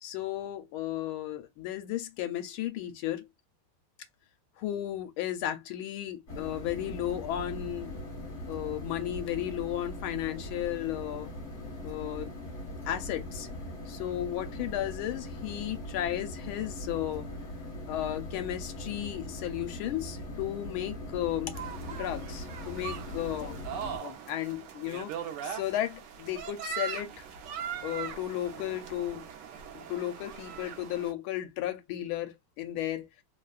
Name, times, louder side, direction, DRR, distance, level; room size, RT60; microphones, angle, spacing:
voice 1, 0.0-3.3 4.6-8.0 8.5-11.3 11.8-12.3 12.8-13.5 13.9-17.3 17.9-21.6 21.9-23.6 24.0-27.3 27.8-29.3 29.7-33.1, left 12 dB, 80° left, 1.4 m, -34 dB
sound 1, 6.3-24.0, left 1 dB, 35° left, 1.5 m, -40 dB
sound 2, 21.5-31.1, right 8 dB, 65° right, 1.2 m, -40 dB
3.5 x 2.2 x 2.3 m
omnidirectional pair, 2.4 m